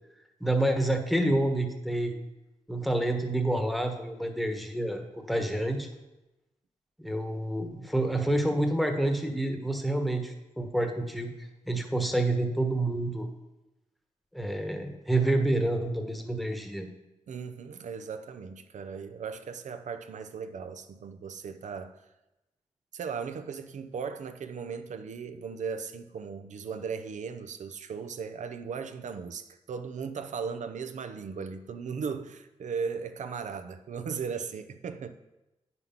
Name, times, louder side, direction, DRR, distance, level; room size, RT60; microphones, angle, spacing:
voice 1, 0.4-2.2 2.7-5.0 5.3-5.9 7.0-13.3 14.3-16.9, right 1 dB, ahead, 1.2 m, -28 dB
voice 2, 17.3-22.0 22.9-35.1, right 6 dB, 75° right, 0.7 m, -37 dB
9.5 x 5.5 x 5.8 m
wide cardioid pair, 100°, 13 cm